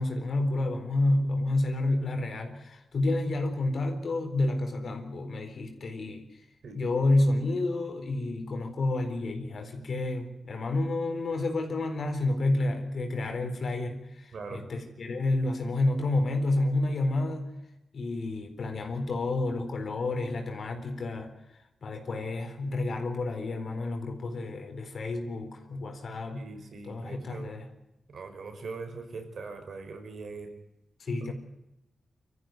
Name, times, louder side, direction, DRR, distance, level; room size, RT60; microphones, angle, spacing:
voice 1, 0.0-6.4 6.7-17.5 17.9-21.3 21.8-26.5 26.8-27.7 31.0-31.3, left 2 dB, 60° left, 5 dB, 4.1 m, -29 dB
voice 2, 14.3-14.6 26.3-27.5 28.1-30.5 31.2-31.3, right 4 dB, 65° right, 7 dB, 5.1 m, -41 dB
26.5 x 14.5 x 9.3 m, 0.89 s
wide cardioid pair, 125°, 0 cm